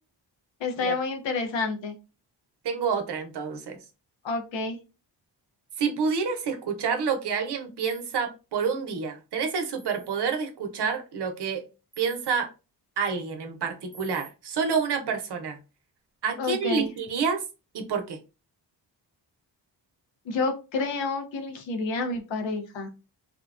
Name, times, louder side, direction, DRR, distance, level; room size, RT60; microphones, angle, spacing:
voice 1, 0.6-1.9 4.2-4.8 16.4-16.9 20.2-22.9, left 4 dB, 90° left, 4 dB, 0.8 m, -29 dB
voice 2, 2.6-3.8 5.8-11.6 12.0-12.5 13.0-15.6 16.2-17.4 17.7-18.2, right 5 dB, 65° right, 5 dB, 0.8 m, -28 dB
sound 1, 7.8-8.2 9.8-10.2 11.9-12.3 13.9-14.3, right 6 dB, 20° right, 0.8 m, -48 dB
2.7 x 2.2 x 2.4 m, 0.30 s
cardioid pair, 95°, 44 cm